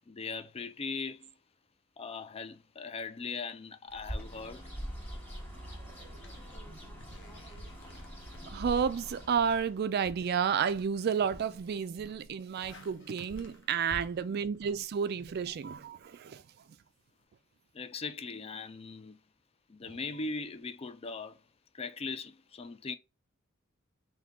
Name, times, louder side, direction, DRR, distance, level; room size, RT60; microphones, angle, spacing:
voice 1, 0.1-1.3 2.0-4.7 17.7-19.2 19.7-21.4 21.7-23.0, left 4 dB, 30° left, 0.4 m, -39 dB
Bird, 3.9-9.8, equal, 10° left, 1.2 m, -44 dB
sound 1, 5.4-11.5, right 2 dB, 30° right, 1.0 m, -57 dB
sound 2, 6.2-16.0, left 1 dB, 60° left, 0.8 m, -53 dB
voice 2, 8.5-16.4 19.8-20.0, right 7 dB, 50° right, 0.3 m, -31 dB
3.7 x 2.7 x 3.5 m
head